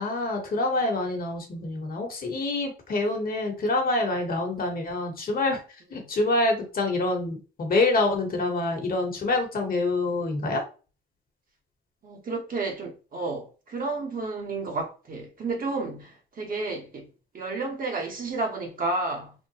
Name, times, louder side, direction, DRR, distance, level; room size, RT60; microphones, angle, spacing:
voice 1, 0.0-5.6 5.9-10.6, left 2 dB, 45° left, 1.2 m, -26 dB
voice 2, 12.0-17.1 17.3-19.3, right 3 dB, 45° right, 1.0 m, -31 dB
3.5 x 2.2 x 2.8 m
cardioid pair, 90°, 20 cm